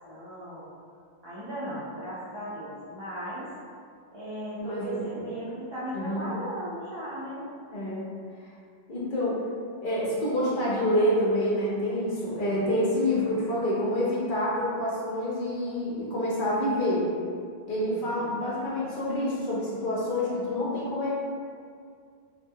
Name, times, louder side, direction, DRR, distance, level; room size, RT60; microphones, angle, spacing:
voice 1, 0.1-0.7 1.2-3.5 4.1-7.5 17.9-18.7, right 1 dB, 40° right, -12 dB, 0.4 m, -37 dB
voice 2, 4.6-5.2 5.9-6.2 7.7-8.1 8.4-8.5 8.9-9.4 9.8-17.1 17.7-21.1, left 1 dB, 60° left, -6 dB, 0.7 m, -27 dB
2.1 x 2.1 x 3.5 m, 2.2 s
omnidirectional pair, 1.1 m